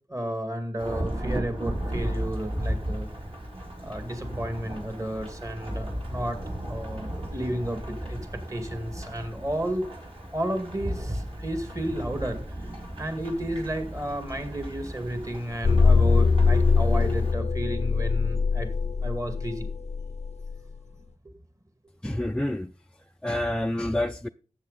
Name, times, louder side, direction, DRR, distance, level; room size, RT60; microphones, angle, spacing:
voice 1, 0.1-3.1 3.8-6.4 6.7-9.9 10.3-18.7 19.0-19.7, right 1 dB, 25° right, 2.2 m, -32 dB
Thunderstorm / Rain, 0.8-17.3, equal, 45° right, 3.7 m, -35 dB
sound 1, 15.6-20.6, left 4 dB, 60° left, 0.6 m, -22 dB
voice 2, 22.0-22.7 23.2-24.3, left 1 dB, 5° left, 0.4 m, -28 dB
12.5 x 8.3 x 4.1 m
wide cardioid pair, 75°, 13 cm